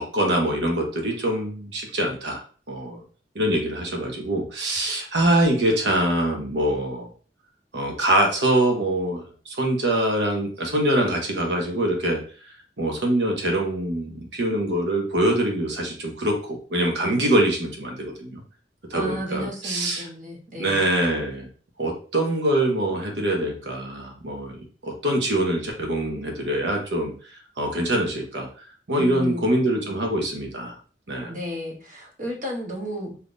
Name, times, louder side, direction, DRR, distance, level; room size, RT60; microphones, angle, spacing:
voice 1, 0.0-2.4 2.7-3.0 3.3-7.1 7.7-18.4 18.9-20.1 20.6-21.5 21.8-24.6 24.8-28.5 28.9-30.8 31.1-31.3, right 1 dB, 80° right, 2 dB, 0.9 m, -24 dB
voice 2, 18.9-20.8 29.0-29.6 31.3-33.2, equal, 50° right, 1 dB, 0.9 m, -33 dB
3.5 x 2.8 x 2.5 m, 0.41 s
head